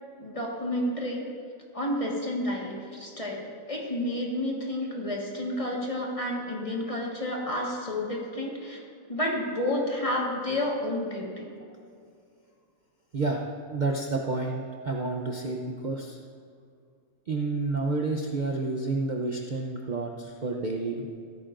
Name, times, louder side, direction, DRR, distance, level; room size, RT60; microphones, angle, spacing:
voice 1, 0.2-1.2 1.7-8.8 9.1-11.5, left 1 dB, 25° left, -2 dB, 1.6 m, -30 dB
voice 2, 13.7-16.2 17.3-21.1, right 3 dB, 40° right, 0 dB, 0.8 m, -30 dB
15.0 x 13.5 x 2.6 m, 2.3 s
omnidirectional pair, 1.4 m